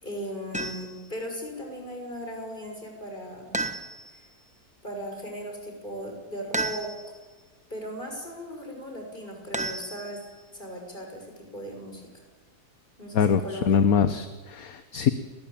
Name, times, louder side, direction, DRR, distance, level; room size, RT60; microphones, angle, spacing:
voice 1, 0.0-3.6 4.1-4.3 4.8-7.0 7.7-10.2 10.5-12.3 13.0-14.2, equal, 30° left, 2 dB, 6.4 m, -37 dB
sound 1, 0.5-1.1 3.5-4.3 6.5-7.2 9.5-10.4, right 2 dB, 5° right, 1.1 m, -33 dB
voice 2, 13.1-15.1, left 7 dB, 65° left, 10 dB, 1.5 m, -23 dB
29.5 x 20.5 x 8.9 m, 1.4 s
omnidirectional pair, 1.7 m